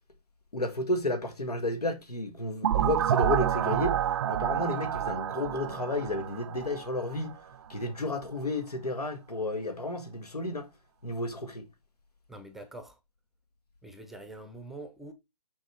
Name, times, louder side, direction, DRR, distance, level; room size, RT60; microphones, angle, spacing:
voice 1, 0.5-4.0 4.3-7.4 7.7-10.7 11.0-11.7, left 1 dB, 90° left, 2.0 m, -32 dB
sound 1, 2.6-7.3, right 10 dB, 45° right, 0.5 m, -29 dB
voice 2, 12.3-13.0 13.8-15.1, right 2 dB, ahead, 0.6 m, -44 dB
6.4 x 5.7 x 4.6 m
hypercardioid pair, 140°, 19 cm